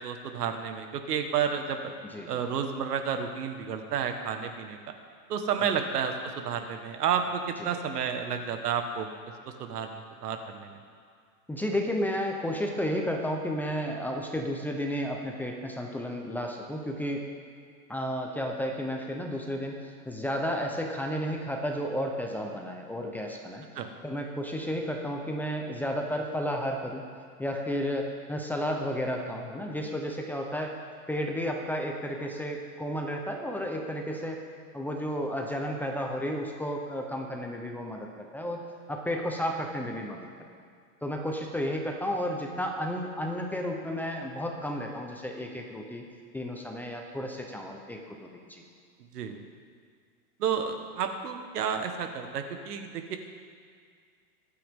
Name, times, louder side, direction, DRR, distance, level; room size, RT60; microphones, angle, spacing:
voice 1, 0.0-1.9 2.3-4.9 5.3-9.1 9.6-10.8 23.7-23.9 49.1-49.4 50.4-53.2, right 7 dB, 85° right, 6 dB, 1.6 m, -31 dB
voice 2, 11.5-17.2 17.9-23.7 24.0-27.0 27.4-30.8 31.1-34.4 34.7-38.6 38.9-40.3 41.0-46.0 46.3-48.6, equal, 5° left, 1 dB, 0.7 m, -32 dB
24.5 x 9.1 x 3.7 m, 2.1 s
supercardioid pair, 145°, 46 cm